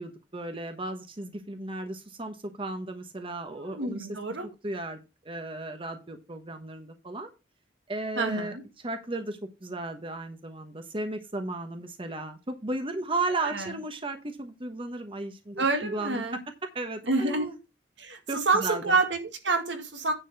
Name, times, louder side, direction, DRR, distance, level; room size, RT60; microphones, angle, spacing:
voice 1, 0.0-4.1 4.6-5.0 5.2-7.3 7.9-8.5 8.8-16.2 16.6-17.6 18.3-19.0, right 2 dB, 30° right, 1.1 m, -35 dB
voice 2, 3.5-4.5 8.2-8.6 13.4-13.7 15.6-16.4 17.1-17.5 18.0-20.1, right 3 dB, 75° right, 2.0 m, -28 dB
10.0 x 4.1 x 6.7 m
head